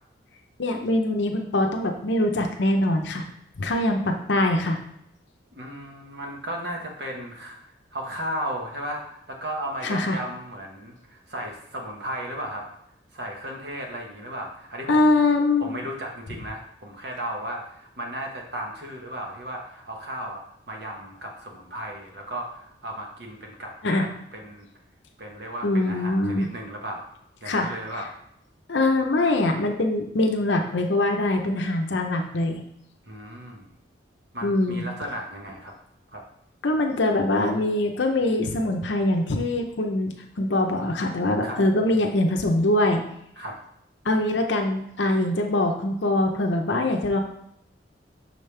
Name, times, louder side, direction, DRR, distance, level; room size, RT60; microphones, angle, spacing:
voice 1, 0.6-3.2 3.6-4.8 9.8-10.2 14.9-15.8 23.8-24.0 25.6-26.5 27.5-27.7 28.7-32.6 34.4-34.8 36.6-43.0 44.0-47.2, left 2 dB, 70° left, 3 dB, 0.7 m, -23 dB
voice 2, 5.5-12.7 13.1-15.2 15.6-24.7 25.2-27.1 27.4-28.2 33.1-33.7 34.3-35.7 36.1-36.2 41.4-41.6 43.4-43.5, right 1 dB, 60° right, 1 dB, 1.1 m, -35 dB
6.3 x 5.2 x 3.3 m, 0.75 s
head